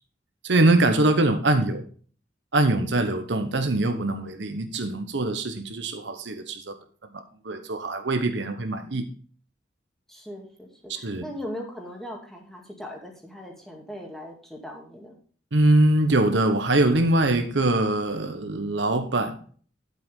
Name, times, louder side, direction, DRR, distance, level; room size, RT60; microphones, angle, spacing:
voice 1, 0.4-1.9 2.5-6.8 7.1-9.1 10.9-11.2 15.5-19.4, right 2 dB, 70° right, 1.0 m, -23 dB
voice 2, 10.1-15.2, equal, ahead, 2.1 m, -39 dB
9.2 x 7.8 x 3.7 m
head